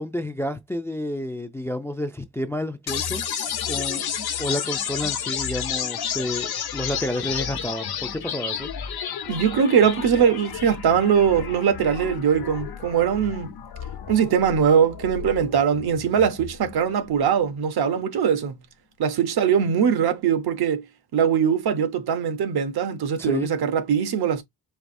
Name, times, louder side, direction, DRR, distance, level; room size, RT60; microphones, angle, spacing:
voice 1, 0.0-3.2 3.7-4.0 4.4-8.7 23.2-23.5, left 1 dB, 5° left, 0.3 m, -30 dB
sound 1, 2.9-16.9, left 8 dB, 70° left, 0.9 m, -31 dB
voice 2, 9.3-13.6 14.1-18.6 19.0-20.8 21.1-24.4, right 7 dB, 75° right, 0.9 m, -21 dB
4.6 x 3.1 x 2.6 m
wide cardioid pair, 125°, 38 cm